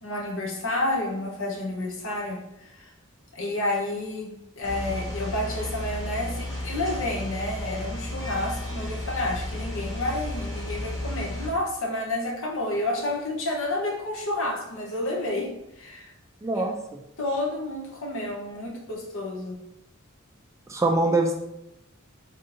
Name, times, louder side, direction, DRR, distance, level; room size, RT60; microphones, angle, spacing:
voice 1, 0.0-2.9 3.3-15.5 15.7-16.1 16.5-16.6 17.2-19.6, left 1 dB, 70° left, 0 dB, 0.9 m, -30 dB
sound 1, 4.6-11.5, left 1 dB, 15° left, 1.0 m, -33 dB
voice 2, 16.4-17.0 20.7-21.3, right 2 dB, 15° right, 3 dB, 0.3 m, -24 dB
3.5 x 2.6 x 4.2 m, 0.85 s
head